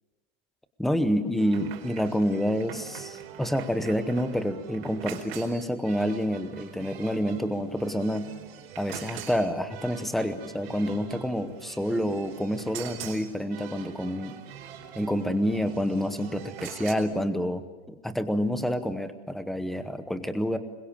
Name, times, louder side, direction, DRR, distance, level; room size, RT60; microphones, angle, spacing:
voice 1, 0.8-8.3 8.8-14.4 14.9-20.6, equal, ahead, 10 dB, 0.8 m, -28 dB
sound 1, 1.4-16.9, right 9 dB, 70° right, 4.6 m, -44 dB
25.5 x 22.5 x 8.8 m, 1.2 s
supercardioid pair, 175°, 32 cm